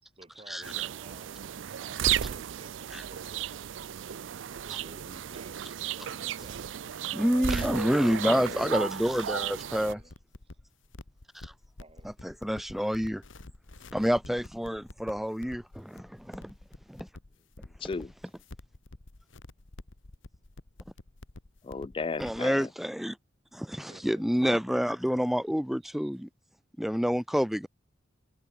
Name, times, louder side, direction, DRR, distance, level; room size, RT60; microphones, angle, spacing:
voice 1, 0.0-3.7 4.5-5.6 5.9-6.9 9.7-10.1 11.8-12.1 15.6-15.9 18.2-18.4 23.8-24.5 25.4-25.5 25.8-26.2, right 2 dB, 30° right, 4.3 m, -54 dB
sound 1, 0.6-9.9, right 9 dB, 75° right, 0.4 m, -34 dB
voice 2, 7.1-10.0 11.4-11.5 12.0-13.2 13.9-16.5 16.9-17.1 22.2-23.1 23.5-26.3 26.8-27.7, equal, ahead, 0.8 m, -28 dB
voice 3, 8.2-8.9 17.6-18.1 21.6-22.7, left 4 dB, 25° left, 0.3 m, -36 dB
sound 2, 9.9-22.4, left 2 dB, 80° left, 1.5 m, -49 dB
head